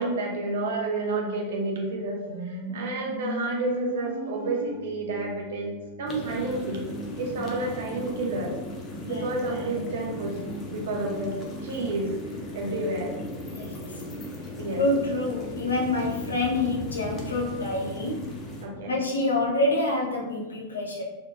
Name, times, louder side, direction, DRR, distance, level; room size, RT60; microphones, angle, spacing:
voice 1, 0.0-6.8 7.2-8.6 9.0-10.4 10.6-11.4 11.6-12.1 12.5-13.1 14.6-14.8 18.6-19.0, right 2 dB, 60° right, 0 dB, 0.7 m, -30 dB
sound 1, 2.3-18.2, left 1 dB, 75° right, 1.2 m, -41 dB
sound 2, 6.1-18.7, left 1 dB, 25° left, 0.7 m, -38 dB
voice 2, 13.5-14.0 14.8-18.2 18.9-21.0, left 2 dB, 75° left, -1 dB, 0.6 m, -27 dB
3.1 x 3.0 x 2.2 m, 1.1 s
figure-of-eight pair, 90°, 0 cm